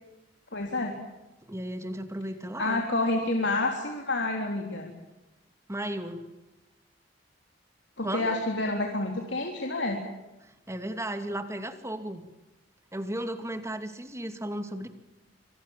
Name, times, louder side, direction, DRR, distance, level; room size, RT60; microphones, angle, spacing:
voice 1, 0.5-0.9 2.6-4.9 8.0-10.0, left 2 dB, 70° left, 2 dB, 3.8 m, -28 dB
voice 2, 1.5-2.8 5.7-6.3 8.0-8.4 10.7-12.2 12.9-14.9, right 1 dB, 15° right, 8 dB, 2.6 m, -34 dB
26.5 x 26.0 x 7.5 m, 1.0 s
head